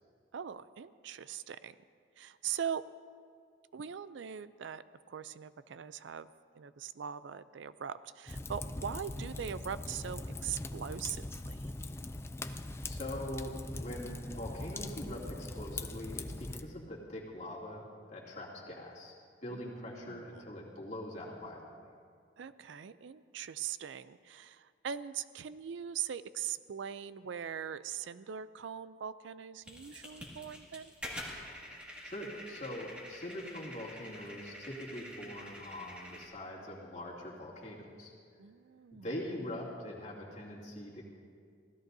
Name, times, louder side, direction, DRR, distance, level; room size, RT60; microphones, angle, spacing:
voice 1, 0.3-1.8 2.2-2.8 3.7-6.3 6.5-11.6 19.5-20.4 22.4-30.9 38.4-39.1, right 8 dB, 70° right, 15 dB, 0.4 m, -41 dB
Fire, 8.3-16.6, left 2 dB, 15° left, 0.3 m, -41 dB
voice 2, 12.8-17.8 18.1-19.1 19.4-21.7 32.0-38.1 38.9-41.0, left 1 dB, 35° left, -4 dB, 2.6 m, -43 dB
sound 1, 29.6-36.3, equal, 5° right, 2.0 m, -47 dB
24.5 x 16.0 x 2.7 m, 2.2 s
head